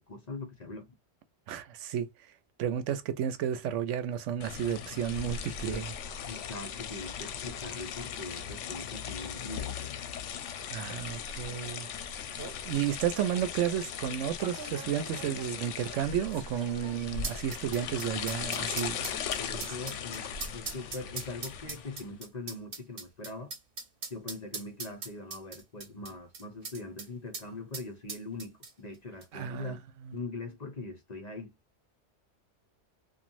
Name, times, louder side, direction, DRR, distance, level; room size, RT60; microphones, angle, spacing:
voice 1, 0.1-0.9 6.3-10.0 19.3-23.5 24.1-29.8 30.1-31.5, left 3 dB, 40° left, 0.7 m, -42 dB
voice 2, 1.5-2.1 2.6-5.9 10.7-11.9 12.6-19.1 19.5-19.7 29.3-29.8 30.0-30.2, right 9 dB, 85° right, 0.9 m, -32 dB
sound 1, 4.4-22.1, left 7 dB, 80° left, 0.9 m, -38 dB
sound 2, 11.8-11.9 12.2-12.6 13.3-13.5 14.4-27.1 27.3-27.5 27.7-28.9 29.2-29.3, right 5 dB, 55° right, 0.9 m, -41 dB
3.0 x 2.3 x 2.5 m
omnidirectional pair, 1.2 m